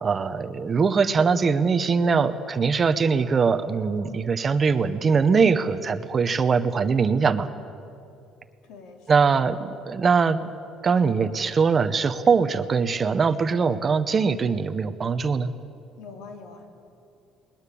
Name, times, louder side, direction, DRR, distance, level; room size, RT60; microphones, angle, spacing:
voice 1, 0.0-7.5 9.1-10.5 10.8-15.5, right 5 dB, 25° right, 11 dB, 0.8 m, -22 dB
voice 2, 8.6-9.4 16.0-16.7, left 4 dB, 80° left, 4 dB, 3.2 m, -44 dB
21.0 x 20.5 x 8.4 m, 2.6 s
cardioid pair, 165°, 0 cm